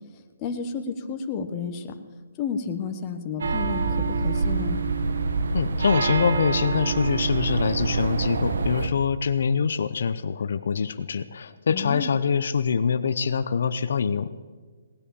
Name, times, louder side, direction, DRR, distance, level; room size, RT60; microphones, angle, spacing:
voice 1, 0.4-1.9 2.4-3.8 4.2-4.8 11.7-12.1, left 6 dB, 20° left, 5 dB, 1.1 m, -31 dB
sound 1, 3.4-8.9, right 4 dB, 85° right, 1.2 m, -26 dB
voice 2, 5.5-14.3, left 6 dB, 65° left, 12 dB, 0.7 m, -24 dB
18.5 x 10.0 x 6.9 m, 1.5 s
hypercardioid pair, 170°, 0 cm